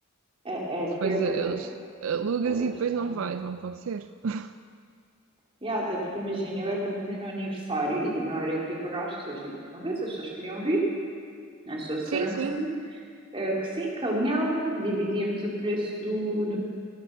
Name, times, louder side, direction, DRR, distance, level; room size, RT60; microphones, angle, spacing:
voice 1, 0.4-1.5 2.4-3.2 5.6-10.8 11.7-12.7 13.3-16.6, right 1 dB, 25° right, -3 dB, 2.8 m, -30 dB
voice 2, 1.0-1.7 2.0-4.5 12.1-12.6, right 6 dB, 75° right, 11 dB, 0.4 m, -29 dB
18.5 x 8.5 x 6.4 m, 2.1 s
head